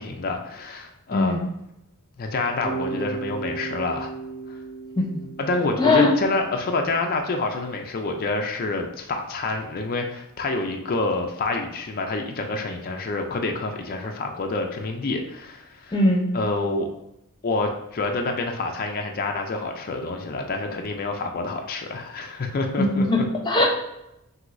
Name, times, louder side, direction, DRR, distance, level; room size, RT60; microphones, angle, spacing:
voice 1, 0.0-1.4 2.2-4.1 5.4-15.9 16.3-16.9 17.4-23.2, left 3 dB, 40° left, 3 dB, 0.4 m, -27 dB
voice 2, 1.1-1.5 5.0-5.2 5.8-6.1 15.9-16.3 22.8-23.6, left 2 dB, 20° left, -1 dB, 0.8 m, -20 dB
Bass guitar, 2.6-6.6, right 4 dB, 50° right, 1.1 m, -34 dB
6.1 x 2.7 x 2.6 m, 0.84 s
head